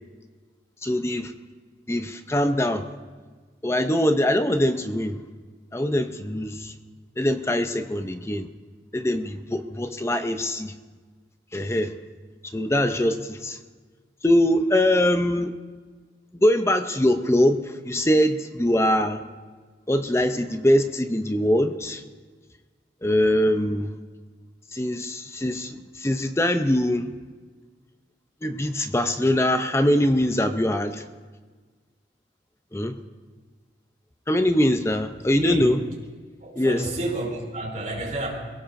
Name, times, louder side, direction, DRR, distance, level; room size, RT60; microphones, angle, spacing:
voice 1, 0.8-1.3 1.9-2.9 3.6-5.2 5.7-6.7 7.2-8.5 8.9-10.7 11.5-11.9 12.5-13.6 14.2-15.5 16.3-19.2 19.9-22.0 23.0-23.9 24.7-27.1 28.4-31.0 32.7-33.0 34.3-35.8 36.6-36.8, left 1 dB, 15° left, 8 dB, 0.5 m, -22 dB
voice 2, 35.3-35.7 36.4-38.3, right 1 dB, 45° right, -2 dB, 3.4 m, -29 dB
23.5 x 17.0 x 2.6 m, 1.4 s
head